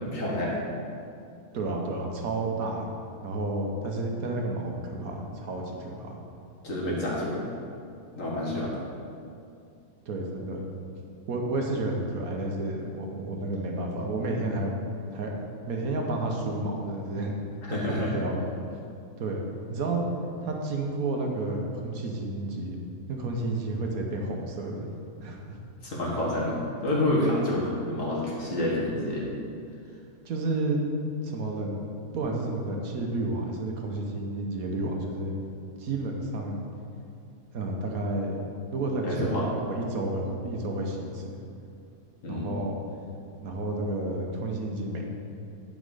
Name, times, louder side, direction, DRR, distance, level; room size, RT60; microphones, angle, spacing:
voice 1, 0.0-0.6 6.6-7.4 8.2-8.8 17.6-18.1 25.8-26.6 26.8-29.2 39.0-39.5 42.2-42.6, left 1 dB, 55° left, -5 dB, 2.0 m, -28 dB
voice 2, 1.5-2.9 3.2-6.2 8.4-8.6 10.1-10.6 11.3-14.7 15.1-15.3 15.7-17.3 17.7-18.4 19.2-19.4 19.7-20.0 20.4-22.8 23.1-24.8 25.2-25.6 30.2-30.8 31.2-31.8 32.1-35.3 35.8-36.7 37.5-38.4 38.7-41.4 42.3-42.8 43.4-45.0, right 2 dB, 70° right, 1 dB, 1.4 m, -31 dB
9.5 x 5.1 x 4.9 m, 2.5 s
omnidirectional pair, 1.6 m